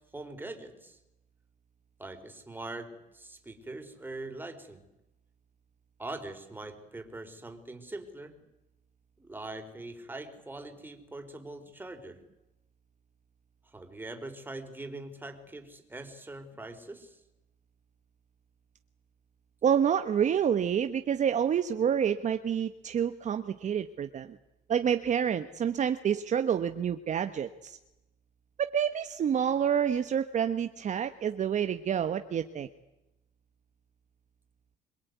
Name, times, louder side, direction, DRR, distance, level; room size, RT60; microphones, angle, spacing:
voice 1, 0.1-1.0 2.0-4.8 6.0-8.4 9.2-12.2 13.7-17.2, right 2 dB, 10° right, 6 dB, 4.5 m, -42 dB
voice 2, 19.6-24.3 24.7-27.8 28.6-32.7, right 8 dB, 45° right, 9 dB, 1.3 m, -28 dB
26.0 x 22.0 x 9.6 m, 0.93 s
cardioid pair, 110°, 17 cm